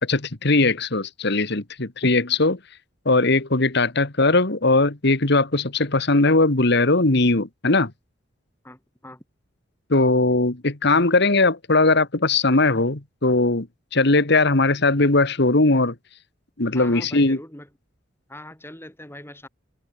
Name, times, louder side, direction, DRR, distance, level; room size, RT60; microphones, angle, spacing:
voice 1, 0.0-2.6 3.1-7.9 9.9-13.7 13.9-16.0 16.6-17.4, left 2 dB, 60° left, 1.9 m, -19 dB
voice 2, 8.6-9.2 16.7-17.7 18.3-19.5, left 1 dB, 10° left, 7.0 m, -41 dB
head